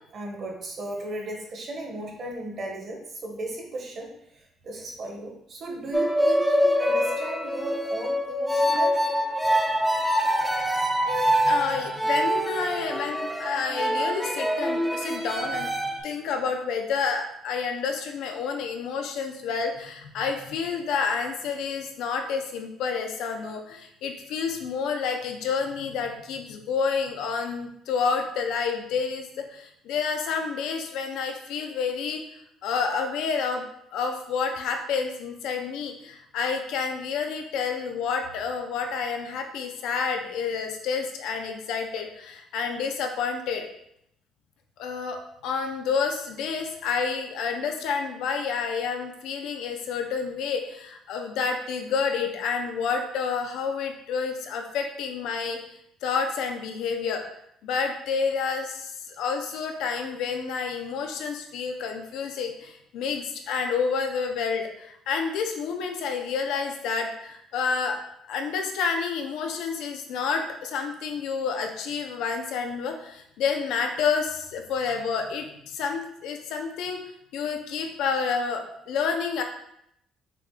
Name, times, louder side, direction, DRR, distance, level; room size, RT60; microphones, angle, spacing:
voice 1, 0.1-9.0, right 1 dB, 40° right, 1 dB, 0.9 m, -36 dB
sound 1, 5.9-16.0, equal, ahead, 0.4 m, -25 dB
voice 2, 11.1-32.2 32.6-33.7 33.9-43.7 44.8-55.6 56.0-57.2 57.6-68.0 68.3-77.0 77.3-79.4, left 5 dB, 75° left, 4 dB, 0.6 m, -29 dB
5.8 x 2.4 x 3.7 m, 0.75 s
cardioid pair, 165°, 0 cm